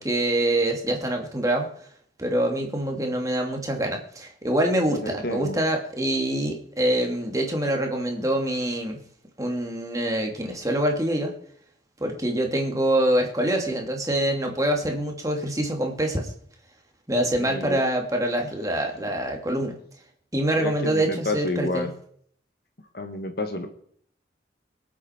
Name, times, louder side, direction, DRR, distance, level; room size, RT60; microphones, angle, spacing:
voice 1, 0.0-1.7 2.2-9.0 9.4-11.3 12.0-16.3 17.1-19.7 20.3-21.9, right 1 dB, 20° right, 2 dB, 2.5 m, -25 dB
voice 2, 4.9-5.6 17.4-17.8 20.6-21.9 22.9-23.7, left 2 dB, 55° left, 6 dB, 1.8 m, -30 dB
25.0 x 8.4 x 4.5 m, 0.62 s
head